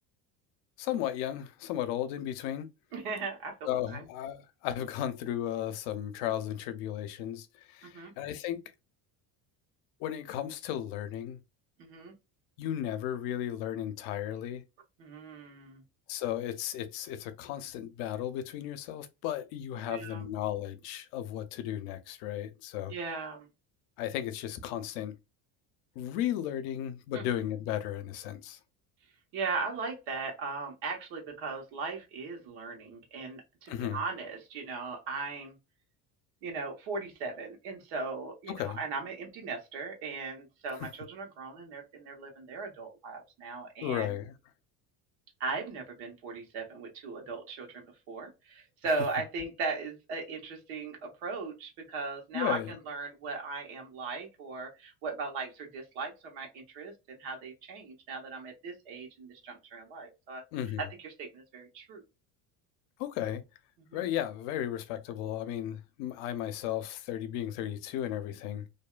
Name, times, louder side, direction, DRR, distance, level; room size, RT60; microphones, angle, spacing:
voice 1, 0.8-2.7 3.6-8.6 10.0-11.4 12.6-14.6 16.1-22.9 24.0-25.2 26.0-28.6 33.7-34.0 38.5-38.8 43.8-44.3 52.3-52.8 60.5-60.8 63.0-63.4 63.9-68.7, left 11 dB, 80° left, 0.6 m, -35 dB
voice 2, 2.9-4.0 7.8-8.1 11.8-12.1 15.0-15.8 19.9-20.2 22.9-23.5 27.1-27.2 29.3-35.6 36.4-44.1 45.4-60.4 60.8-62.0 63.9-64.0, right 4 dB, 85° right, 1.2 m, -38 dB
2.6 x 2.2 x 2.4 m
cardioid pair, 165°, 39 cm